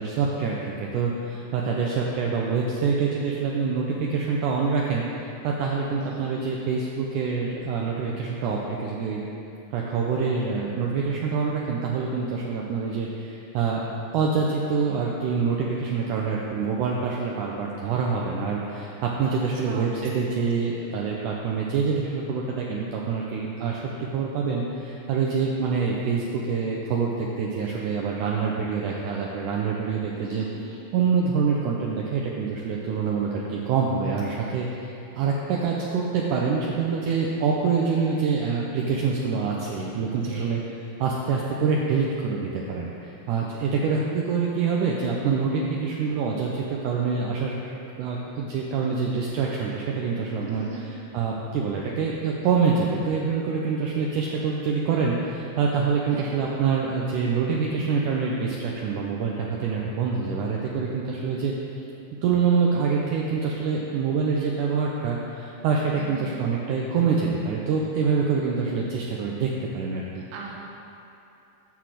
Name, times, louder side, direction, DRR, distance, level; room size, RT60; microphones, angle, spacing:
voice 1, 0.0-9.2 9.7-13.8 14.1-30.5 30.9-40.6 41.0-47.7 48.0-50.8 51.1-61.5 62.2-70.2, right 5 dB, 75° right, -2 dB, 2.0 m, -26 dB
voice 2, 5.9-6.3 19.2-19.4 19.6-19.8 30.1-30.6 40.3-40.5 50.4-50.9 56.1-56.4 65.9-66.3 70.3-70.6, right 3 dB, 55° right, -3 dB, 1.8 m, -40 dB
10.0 x 4.1 x 7.5 m, 2.7 s
omnidirectional pair, 4.0 m